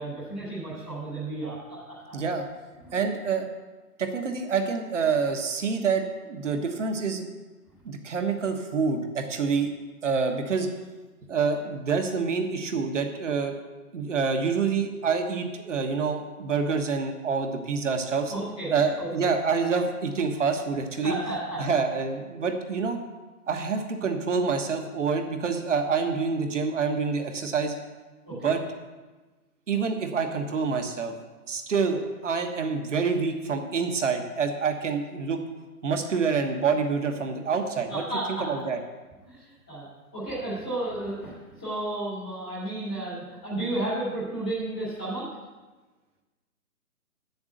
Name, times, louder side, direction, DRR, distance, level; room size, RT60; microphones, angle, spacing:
voice 1, 0.0-2.1 18.3-19.1 21.0-21.6 28.2-28.5 31.9-32.0 37.9-38.5 39.2-39.9 40.1-45.2, right 2 dB, 5° left, -12 dB, 0.7 m, -33 dB
voice 2, 2.1-2.5 2.9-3.5 4.0-7.3 7.8-9.7 10.0-10.7 11.3-13.5 13.9-18.3 18.7-21.1 21.6-23.0 23.5-27.7 28.3-28.6 29.7-31.1 31.5-35.4 35.8-38.8, right 5 dB, 50° right, 5 dB, 1.3 m, -27 dB
7.8 x 7.2 x 7.9 m, 1.2 s
hypercardioid pair, 160°, 46 cm